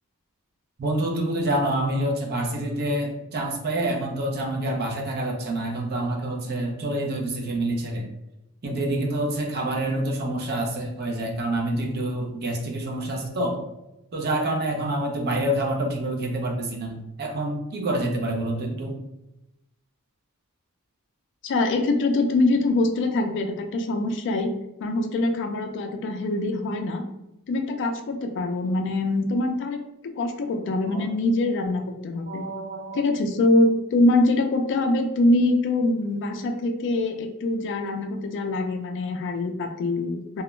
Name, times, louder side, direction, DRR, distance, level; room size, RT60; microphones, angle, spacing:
voice 1, 0.8-8.0 8.6-13.6 14.1-19.0 30.9-31.0 32.3-33.1, right 1 dB, 45° right, 1 dB, 0.5 m, -27 dB
voice 2, 21.4-24.5 24.8-27.0 27.5-29.8 30.2-32.4 32.9-40.4, left 2 dB, 55° left, 5 dB, 0.3 m, -24 dB
2.3 x 2.1 x 3.0 m, 0.90 s
head